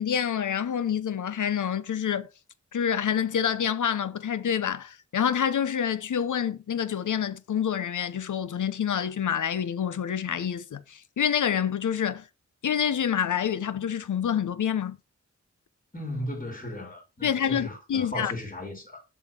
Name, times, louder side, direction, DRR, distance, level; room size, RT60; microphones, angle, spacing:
voice 1, 0.0-2.3 2.7-12.3 12.6-15.0 17.2-18.3, left 8 dB, 85° left, 0.8 m, -27 dB
voice 2, 15.9-19.0, left 1 dB, 30° left, 3.6 m, -36 dB
7.1 x 5.6 x 4.3 m
cardioid pair, 55°, 30 cm